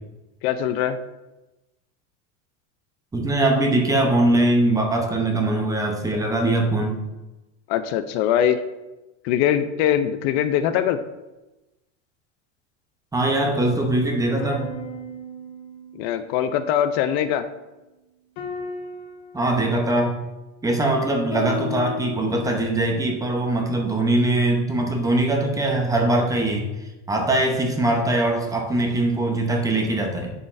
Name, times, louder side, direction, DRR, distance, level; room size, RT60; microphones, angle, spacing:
voice 1, 0.4-1.0 7.7-8.6 9.2-11.0 15.9-17.5, left 10 dB, 60° left, 10 dB, 0.5 m, -22 dB
voice 2, 3.1-7.0 13.1-14.7 19.3-20.2 20.6-26.7 27.1-30.3, right 2 dB, 10° right, 2 dB, 0.7 m, -21 dB
sound 1, 14.4-17.4 18.4-20.7 21.3-24.3, left 5 dB, 80° left, 1.5 m, -36 dB
11.0 x 4.0 x 2.6 m, 1.0 s
supercardioid pair, 145°, 35 cm